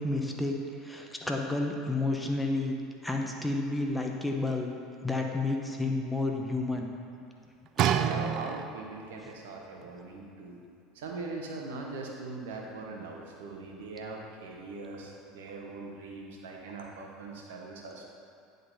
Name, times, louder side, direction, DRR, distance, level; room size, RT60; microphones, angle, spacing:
voice 1, 0.0-2.8 3.0-4.7 5.0-6.9, left 2 dB, 5° left, 1 dB, 0.9 m, -30 dB
sound 1, 7.8-9.1 9.8-9.9, right 9 dB, 55° right, 0.3 m, -28 dB
voice 2, 7.9-10.6 10.9-18.0, right 3 dB, 75° right, 0 dB, 1.0 m, -41 dB
9.7 x 3.9 x 4.1 m, 2.6 s
hypercardioid pair, 80°, 0 cm